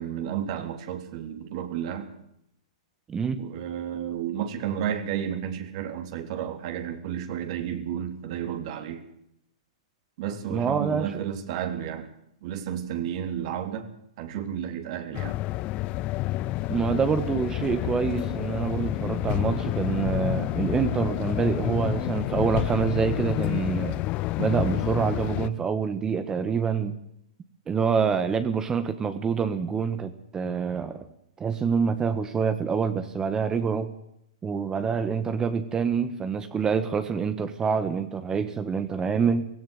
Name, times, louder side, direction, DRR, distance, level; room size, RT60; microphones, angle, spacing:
voice 1, 0.0-2.1 3.4-9.0 10.2-12.1 12.4-13.9 14.2-15.4, right 9 dB, 55° right, 8 dB, 3.5 m, -32 dB
voice 2, 3.1-3.4 10.5-11.2 16.7-24.0 24.4-27.0 27.7-31.1 31.4-33.9 34.4-39.4, right 6 dB, 20° right, 11 dB, 1.5 m, -26 dB
sound 1, 15.1-25.5, left 17 dB, 35° left, 0.7 m, -29 dB
17.0 x 17.0 x 9.3 m, 0.75 s
hypercardioid pair, 125°, 4 cm